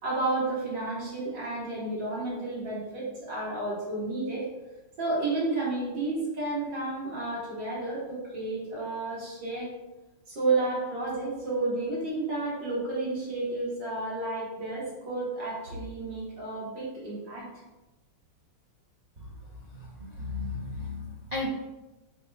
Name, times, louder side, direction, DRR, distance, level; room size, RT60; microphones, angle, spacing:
voice 1, 0.0-4.5 5.0-9.7 10.3-17.5, right 2 dB, 50° right, -7 dB, 3.0 m, -31 dB
voice 2, 19.7-21.5, left 3 dB, 85° right, -5 dB, 0.3 m, -35 dB
9.1 x 5.0 x 2.6 m, 1.1 s
omnidirectional pair, 2.4 m